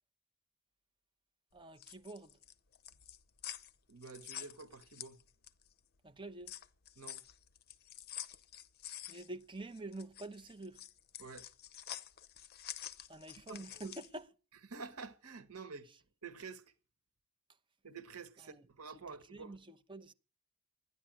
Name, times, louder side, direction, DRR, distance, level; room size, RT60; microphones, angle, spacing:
voice 1, 1.5-2.3 6.0-6.5 9.1-10.8 13.1-14.3 18.4-18.7 19.1-20.1, right 2 dB, 20° right, 0.8 m, -47 dB
sound 1, 1.6-5.7 6.1-14.2, left 11 dB, 45° left, 0.7 m, -48 dB
voice 2, 3.9-5.2 7.0-7.2 11.2-11.4 13.5-13.9 14.7-15.9 16.2-16.6 17.8-19.6, right 5 dB, 85° right, 1.5 m, -49 dB
12.5 x 10.0 x 9.0 m
head